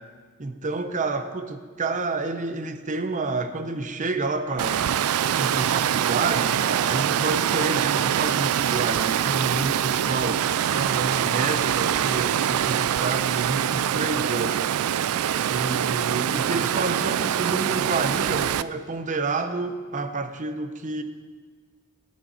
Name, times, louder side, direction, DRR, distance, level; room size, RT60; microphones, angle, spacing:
voice 1, 0.4-4.8 5.3-14.6 15.5-21.0, right 3 dB, 35° right, 9 dB, 0.7 m, -29 dB
Water, 4.6-18.6, right 10 dB, 80° right, 0.3 m, -24 dB
20.0 x 7.4 x 4.2 m, 1.6 s
head